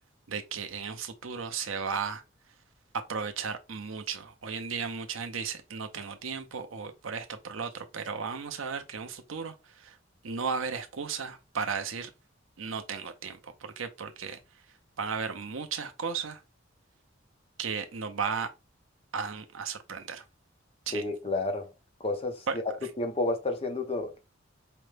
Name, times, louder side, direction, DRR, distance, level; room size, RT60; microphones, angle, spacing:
voice 1, 0.3-2.2 3.1-9.5 9.8-9.9 10.2-12.1 12.6-14.4 15.0-16.4 17.6-18.5 19.1-20.2 20.9-21.0 22.5-22.6, right 6 dB, 80° right, 0.7 m, -35 dB
voice 2, 20.9-21.7 22.0-22.4 23.0-24.2, left 2 dB, 30° left, 0.8 m, -30 dB
5.0 x 2.2 x 3.3 m
head